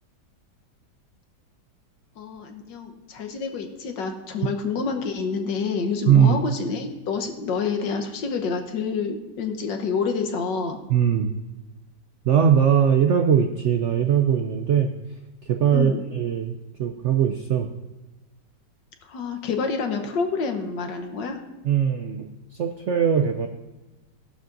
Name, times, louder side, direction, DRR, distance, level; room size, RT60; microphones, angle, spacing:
voice 1, 2.2-10.8 15.7-16.0 19.0-21.4, left 5 dB, 85° left, 5 dB, 1.7 m, -28 dB
voice 2, 6.1-6.4 10.9-11.3 12.2-14.9 15.4-17.7 21.6-23.5, right 8 dB, 75° right, 5 dB, 0.6 m, -20 dB
16.5 x 11.5 x 2.6 m, 1.1 s
omnidirectional pair, 1.9 m